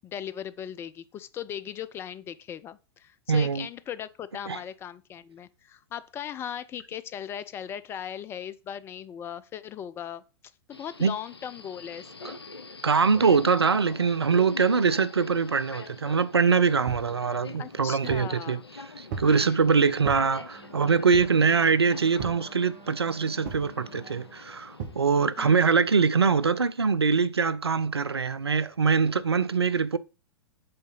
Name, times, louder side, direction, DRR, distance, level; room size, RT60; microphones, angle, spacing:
voice 1, 0.0-10.2 10.7-12.4 17.6-18.6 19.3-19.7 25.4-25.7, left 9 dB, 20° left, 0.4 m, -38 dB
voice 2, 3.3-3.7 4.5-4.6 11.0-11.1 12.2-12.3 12.8-18.6 19.0-30.0, right 5 dB, 85° right, 0.4 m, -23 dB
Subway metro underground, 10.7-26.5, left 3 dB, 85° left, 0.7 m, -45 dB
sound 1, 16.9-17.1 17.7-18.4 19.1-19.4 20.0-20.3 21.1-21.5 22.2-22.5 23.4-23.7 24.8-25.0, right 6 dB, 50° right, 1.6 m, -37 dB
Wind instrument woodwind instrument, 20.5-24.4, right 4 dB, 30° right, 1.2 m, -52 dB
7.7 x 3.8 x 3.9 m
figure-of-eight pair, 100°, 13 cm